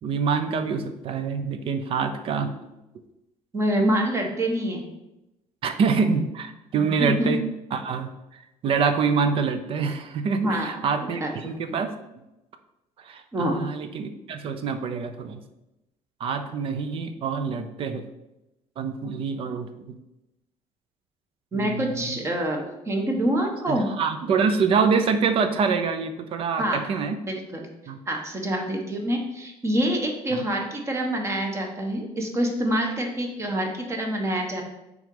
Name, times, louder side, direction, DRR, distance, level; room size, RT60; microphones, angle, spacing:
voice 1, 0.0-2.5 5.6-7.4 7.7-11.9 13.0-15.4 16.2-18.0 18.8-20.0 21.5-22.2 23.7-27.2 27.9-28.0 30.3-30.4, right 5 dB, 45° right, 9 dB, 0.7 m, -26 dB
voice 2, 3.5-4.8 6.8-7.4 10.3-11.3 11.7-11.8 13.3-13.5 21.5-23.9 26.6-27.7 28.1-34.6, right 1 dB, 20° right, 2 dB, 1.1 m, -26 dB
6.1 x 3.9 x 5.3 m, 0.93 s
cardioid pair, 160°, 13 cm